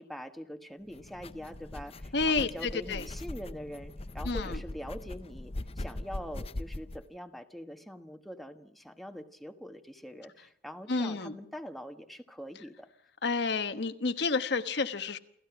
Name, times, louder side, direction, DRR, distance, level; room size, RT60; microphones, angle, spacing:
voice 1, 0.0-12.9, equal, ahead, 6 dB, 1.3 m, -44 dB
sound 1, 0.9-7.0, left 1 dB, 35° left, 0.7 m, -40 dB
voice 2, 2.1-3.1 4.2-4.6 10.9-11.3 13.2-15.2, left 4 dB, 65° left, 9 dB, 1.2 m, -30 dB
29.0 x 15.0 x 6.0 m, 0.77 s
head